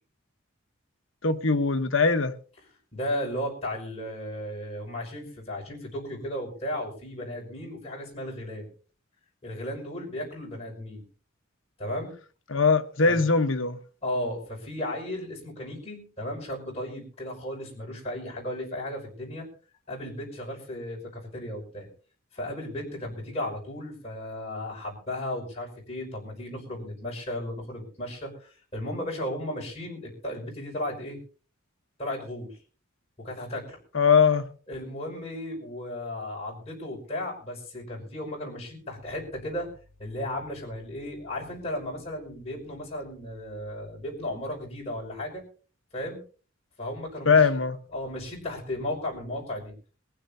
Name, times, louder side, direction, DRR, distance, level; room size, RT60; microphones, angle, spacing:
voice 1, 1.2-2.3 12.5-13.8 33.9-34.5 47.3-47.8, left 5 dB, 70° left, 1.2 m, -21 dB
voice 2, 2.9-8.7 9.4-11.0 11.8-12.1 13.0-13.2 14.0-19.5 19.9-21.9 22.3-31.2 32.0-32.5 33.2-33.8 34.7-39.7 40.0-45.4 45.9-46.2 46.8-47.6 47.9-49.7, left 1 dB, 30° left, 5.8 m, -35 dB
22.5 x 15.0 x 2.8 m
head